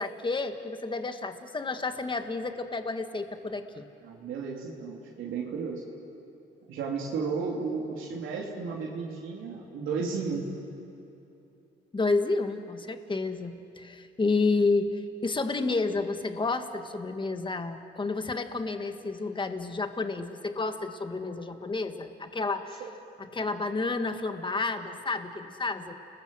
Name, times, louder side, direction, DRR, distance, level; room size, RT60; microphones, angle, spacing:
voice 1, 0.0-3.8 11.9-22.8 23.2-25.9, left 3 dB, 25° left, 7 dB, 1.7 m, -30 dB
voice 2, 4.0-5.8 6.7-10.5 22.8-22.9, right 5 dB, 85° right, -3 dB, 3.3 m, -33 dB
29.5 x 21.0 x 7.9 m, 2.9 s
cardioid pair, 90°, 20 cm